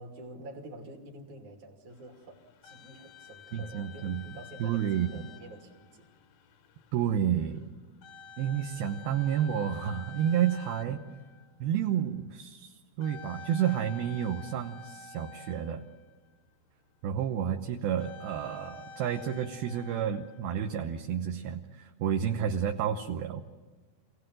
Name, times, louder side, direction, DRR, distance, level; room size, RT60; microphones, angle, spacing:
voice 1, 0.0-6.1 8.7-8.9, right 1 dB, 50° right, 1 dB, 3.7 m, -48 dB
sound 1, 1.9-16.4 17.9-21.2, left 5 dB, 75° left, 1.7 m, -50 dB
voice 2, 3.5-4.2 4.6-5.1 6.9-7.7 8.4-11.2 11.6-15.8 17.0-23.4, right 9 dB, 70° right, 4 dB, 2.7 m, -30 dB
27.5 x 18.0 x 7.7 m, 1.3 s
omnidirectional pair, 4.8 m